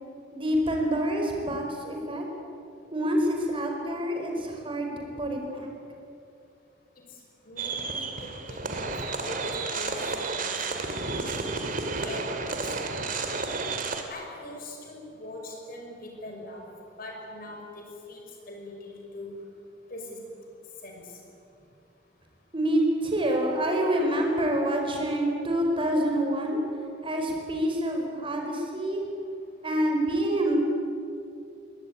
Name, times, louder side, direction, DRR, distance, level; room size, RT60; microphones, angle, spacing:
voice 1, 0.3-2.2 2.9-5.7 22.5-26.6 27.0-29.0 29.6-30.6, right 1 dB, 30° right, 2 dB, 4.8 m, -27 dB
voice 2, 7.5-9.0 9.2-10.6 10.9-11.3 11.6-13.2 14.1-16.7 17.0-19.3 19.9-20.2 20.8-21.2, left 1 dB, 50° left, 1 dB, 5.8 m, -42 dB
sound 1, 7.6-14.0, right 3 dB, 45° right, 2.3 m, -31 dB
22.0 x 18.5 x 9.8 m, 2.5 s
head